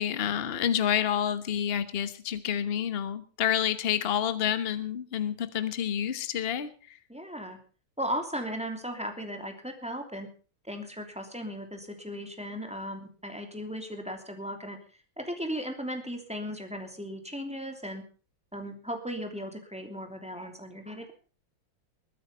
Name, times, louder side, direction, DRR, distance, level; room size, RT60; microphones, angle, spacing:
voice 1, 0.0-7.0, left 9 dB, 35° left, 12 dB, 1.1 m, -29 dB
voice 2, 7.1-7.6 8.0-10.3 10.7-14.8 15.2-18.0 18.5-21.1, equal, 5° right, 4 dB, 2.8 m, -36 dB
21.5 x 9.3 x 5.5 m, 0.38 s
omnidirectional pair, 2.2 m